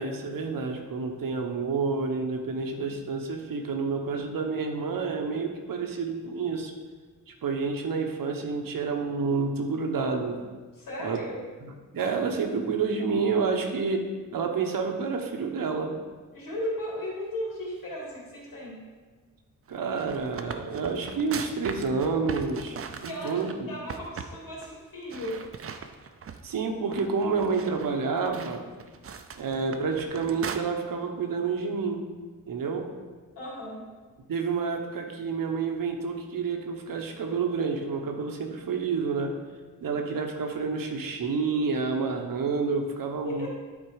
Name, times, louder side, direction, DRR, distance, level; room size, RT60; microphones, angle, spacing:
voice 1, 0.0-6.7 7.4-10.4 11.0-11.2 11.9-16.0 19.7-23.7 26.4-28.7 29.4-32.0 32.5-32.9 34.3-39.4 39.8-43.5, right 4 dB, 90° right, 4 dB, 1.1 m, -29 dB
voice 2, 10.8-11.4 16.3-18.8 23.0-25.4 33.3-33.9 43.2-43.5, left 1 dB, 85° left, -4 dB, 2.9 m, -36 dB
sound 1, 19.8-23.5 23.9-24.3 24.6-24.7 25.1-26.5 26.9-30.6, right 6 dB, 45° right, 0.5 m, -39 dB
11.0 x 4.5 x 4.9 m, 1.4 s
wide cardioid pair, 170°, 33 cm